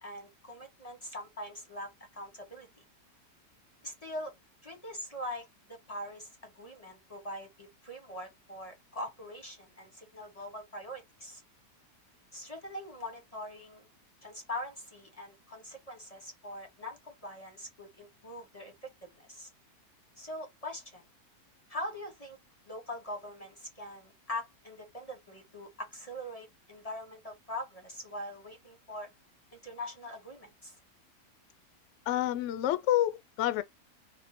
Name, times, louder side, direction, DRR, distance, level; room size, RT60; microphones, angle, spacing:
voice 1, 0.0-2.8 3.8-4.3 4.6-11.4 12.3-13.8 14.2-19.5 20.2-21.0 21.7-22.4 22.6-29.1 29.5-30.8, left 1 dB, 35° left, 0.6 m, -42 dB
voice 2, 32.1-33.6, left 13 dB, 70° left, 0.7 m, -28 dB
4.3 x 2.1 x 4.2 m
omnidirectional pair, 1.8 m